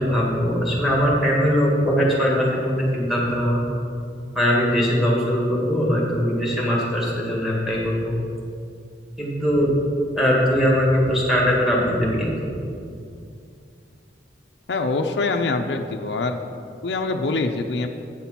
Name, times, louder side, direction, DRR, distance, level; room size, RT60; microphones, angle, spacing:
voice 1, 0.0-3.6 4.3-8.1 9.2-9.7 10.1-12.5, equal, ahead, -4 dB, 1.8 m, -21 dB
voice 2, 14.7-16.4 16.8-17.9, left 3 dB, 65° left, 4 dB, 0.5 m, -24 dB
8.7 x 6.0 x 5.7 m, 2.4 s
head